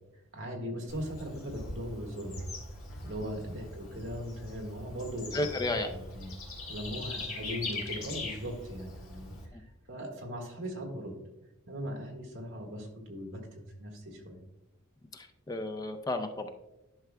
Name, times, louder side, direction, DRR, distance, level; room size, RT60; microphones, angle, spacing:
voice 1, 0.3-2.4 3.0-6.3 6.7-11.1 11.6-14.4, equal, 60° right, 1 dB, 1.8 m, -39 dB
Bird / Insect, 0.9-9.5, left 2 dB, 80° left, 1.9 m, -41 dB
voice 2, 5.3-5.9 9.5-9.6 15.1-16.5, left 2 dB, 15° left, 6 dB, 0.4 m, -33 dB
11.5 x 5.8 x 2.2 m, 0.93 s
head